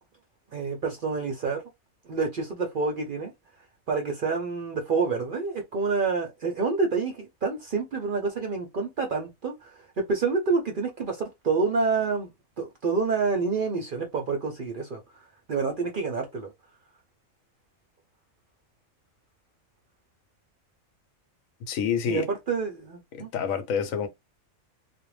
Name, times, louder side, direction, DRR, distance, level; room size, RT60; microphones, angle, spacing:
voice 1, 0.5-1.6 2.1-3.3 3.9-12.3 12.6-15.2 15.5-16.5 22.1-23.3, right 4 dB, 55° right, 0.6 m, -28 dB
voice 2, 21.7-22.3 23.1-24.1, left 7 dB, 80° left, 1.0 m, -28 dB
2.4 x 2.0 x 3.1 m
omnidirectional pair, 1.4 m